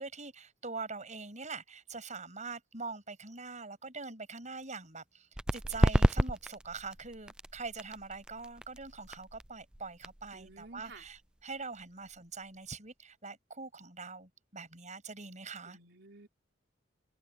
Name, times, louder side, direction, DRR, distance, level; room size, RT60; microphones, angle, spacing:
voice 1, 0.0-5.3 5.5-15.8, right 4 dB, 40° right, 7.4 m, -43 dB
sound 1, 5.3-12.7, equal, 5° right, 0.4 m, -33 dB
voice 2, 10.3-11.1 15.7-16.3, right 3 dB, 60° right, 5.1 m, -52 dB
head